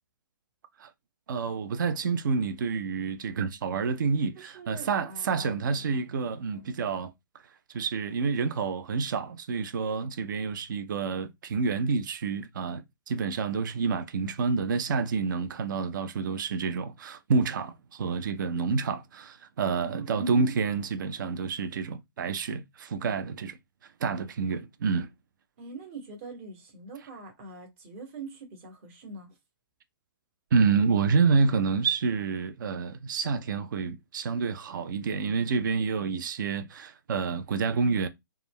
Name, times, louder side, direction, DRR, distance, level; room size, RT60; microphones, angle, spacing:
voice 1, 1.3-7.1 7.7-23.6 24.0-25.1 30.5-38.1, right 5 dB, 60° right, 0.5 m, -28 dB
voice 2, 4.4-5.6 6.5-6.7 19.8-20.1 25.6-29.3, right 3 dB, 40° right, 1.1 m, -44 dB
2.3 x 2.2 x 3.5 m
hypercardioid pair, 135°, 11 cm